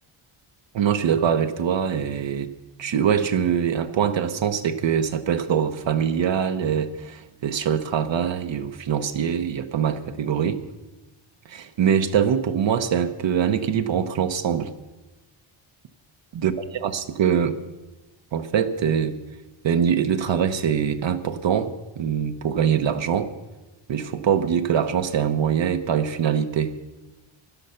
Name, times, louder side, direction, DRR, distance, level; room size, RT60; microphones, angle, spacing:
voice 1, 0.7-2.5 2.8-10.6 11.5-14.7 16.3-17.6 18.3-19.2 19.6-23.3 23.9-26.7, right 8 dB, 60° right, 7 dB, 0.9 m, -23 dB
17.5 x 11.5 x 5.7 m, 1.1 s
wide cardioid pair, 120°, 50 cm